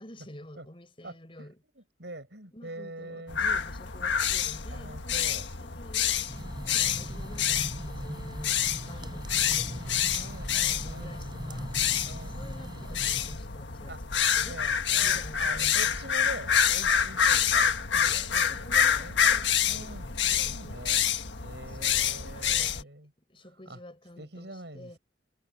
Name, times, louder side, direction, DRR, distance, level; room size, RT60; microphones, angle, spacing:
voice 1, 0.0-1.6 2.5-6.3 6.6-10.1 10.7-11.8 12.2-13.9 14.4-14.6 15.0-15.9 18.5-19.9 20.3-21.1 21.7-22.9 23.3-25.0, left 1 dB, 30° left, 5.6 m, -49 dB
voice 2, 1.0-3.4 4.7-5.5 6.7-7.1 10.1-11.3 12.0-12.5 13.9-19.2 19.6-21.0 21.4-23.1 23.7-23.8 24.2-25.0, right 2 dB, 70° right, 7.9 m, -44 dB
sound 1, 3.3-22.8, left 8 dB, 80° left, 1.5 m, -28 dB
sound 2, 6.3-13.4, equal, 25° right, 5.5 m, -40 dB
head